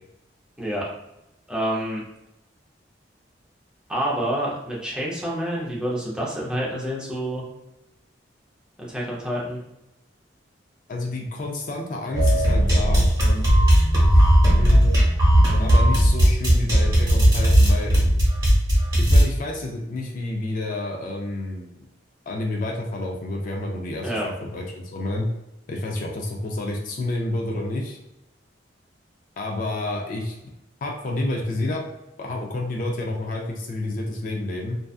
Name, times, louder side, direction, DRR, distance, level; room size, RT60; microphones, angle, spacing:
voice 1, 0.6-0.9 1.5-2.0 3.9-7.4 8.8-9.6 24.0-24.3, equal, 5° right, -5 dB, 0.6 m, -27 dB
voice 2, 10.9-13.1 14.6-14.9 15.6-17.9 19.0-21.9 22.3-25.3 25.7-28.0 29.4-30.4 30.8-31.8 32.2-34.8, left 2 dB, 45° left, 0 dB, 0.4 m, -29 dB
sound 1, 12.1-19.2, equal, 20° right, 1.0 m, -17 dB
2.6 x 2.3 x 2.3 m, 0.91 s
head